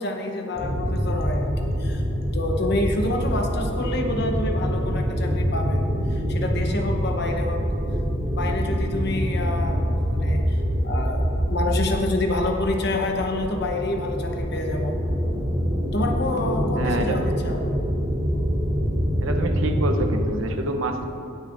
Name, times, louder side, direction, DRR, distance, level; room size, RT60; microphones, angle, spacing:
voice 1, 0.0-2.0 2.3-5.8 6.1-7.6 8.3-9.9 10.1-10.6 10.8-15.0 15.9-17.7, left 2 dB, 55° left, 3 dB, 0.9 m, -27 dB
sound 1, 0.6-20.2, equal, 30° right, 1.0 m, -25 dB
voice 2, 16.8-17.2 19.2-21.0, right 2 dB, 85° right, 5 dB, 0.8 m, -27 dB
19.0 x 6.5 x 2.6 m, 2.6 s
head